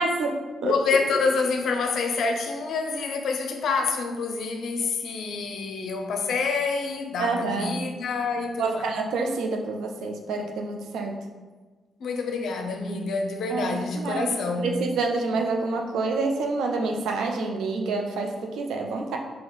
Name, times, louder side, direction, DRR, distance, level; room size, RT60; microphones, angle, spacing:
voice 1, 0.0-0.7 7.2-7.8 8.6-11.2 13.5-19.2, right 3 dB, 75° right, 2 dB, 0.5 m, -28 dB
voice 2, 0.6-8.9 12.0-14.7, left 4 dB, 70° left, 4 dB, 0.5 m, -27 dB
4.1 x 2.7 x 3.9 m, 1.4 s
hypercardioid pair, 45°, 0 cm